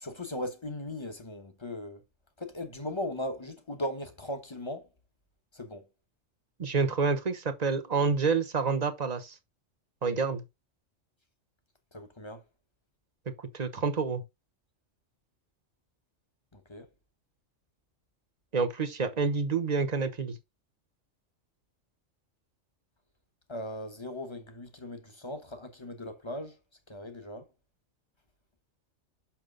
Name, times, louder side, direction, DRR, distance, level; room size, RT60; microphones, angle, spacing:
voice 1, 0.0-2.0 2.4-4.9 5.5-5.9 11.9-12.4 16.5-16.9 23.5-26.6 26.9-27.5, left 1 dB, 25° left, 1.1 m, -38 dB
voice 2, 6.6-9.4 10.0-10.4 13.5-14.2 18.5-20.4, right 4 dB, 35° right, 1.0 m, -28 dB
5.9 x 5.9 x 3.9 m
omnidirectional pair, 1.3 m